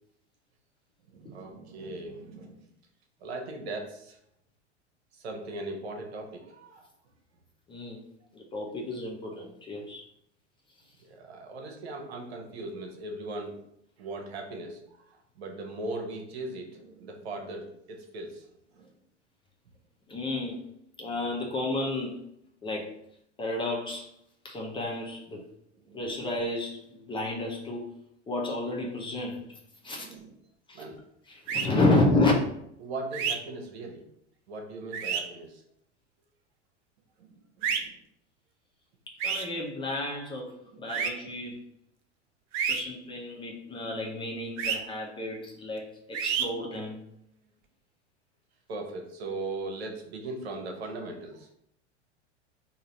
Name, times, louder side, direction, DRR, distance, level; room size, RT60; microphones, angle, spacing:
voice 1, 1.1-2.6 3.2-4.2 5.2-6.9 11.0-13.6 14.0-18.5 18.7-18.9 25.8-26.0 29.8-30.3 30.7-30.9 31.8-32.0 32.8-34.0 34.5-35.6 37.2-37.9 40.7-40.9 41.2-41.3 48.7-51.5, right 2 dB, 60° right, 2 dB, 1.0 m, -39 dB
voice 2, 7.7-8.0 8.3-10.0 20.1-20.6 21.0-22.2 22.6-22.9 23.4-24.1 24.4-25.4 25.9-27.9 28.3-29.6 29.8-30.1 30.7-30.8 31.3-32.3 39.1-41.6 42.7-47.0, left 2 dB, 15° left, 0 dB, 0.5 m, -31 dB
sound 1, 31.5-31.7 33.1-33.4 34.9-35.2 37.6-37.8 39.2-39.4 40.9-41.1 42.5-42.8 44.6-44.8 46.1-46.5, right 7 dB, 35° right, 0.5 m, -28 dB
3.8 x 2.8 x 4.4 m, 0.75 s
figure-of-eight pair, 85°, 35 cm